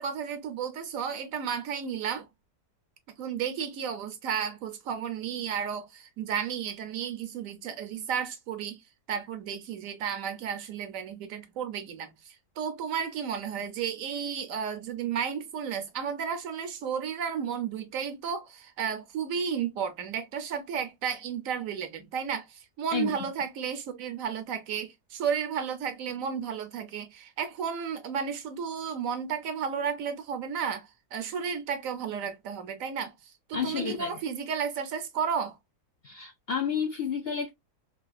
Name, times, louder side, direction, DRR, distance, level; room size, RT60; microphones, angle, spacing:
voice 1, 0.0-2.3 3.2-8.8 9.1-33.1 33.5-35.6, right 7 dB, 70° right, 1.0 m, -33 dB
voice 2, 33.5-34.1 36.0-37.5, left 7 dB, 65° left, 0.6 m, -30 dB
3.5 x 2.4 x 2.3 m
omnidirectional pair, 1.6 m